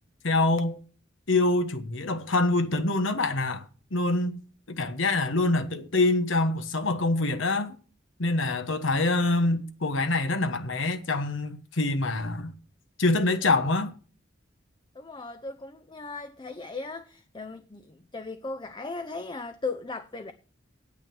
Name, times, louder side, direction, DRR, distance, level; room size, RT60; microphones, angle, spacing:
voice 1, 0.2-0.8 1.3-3.7 3.9-4.4 4.7-7.8 8.2-12.5 13.0-13.9, left 2 dB, 75° left, 1.2 m, -25 dB
voice 2, 14.9-20.3, left 3 dB, 25° left, 0.6 m, -37 dB
9.8 x 8.8 x 6.1 m
head